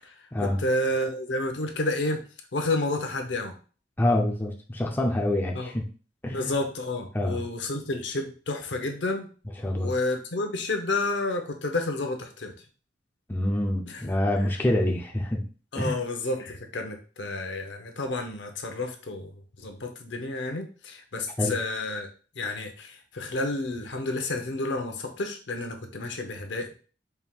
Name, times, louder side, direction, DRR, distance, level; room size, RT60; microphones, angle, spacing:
voice 1, 0.0-2.2 2.5-3.5 5.5-5.7 6.3-9.3 9.7-12.5 13.9-14.0 15.7-19.3 19.6-22.1 22.4-26.7, left 2 dB, 75° left, 5 dB, 0.7 m, -30 dB
voice 2, 4.0-5.9 6.2-6.5 7.1-7.4 9.6-9.9 13.3-15.4 15.7-15.9 21.4-21.5, left 1 dB, 10° left, 0 dB, 0.5 m, -26 dB
4.4 x 3.6 x 2.3 m, 0.38 s
head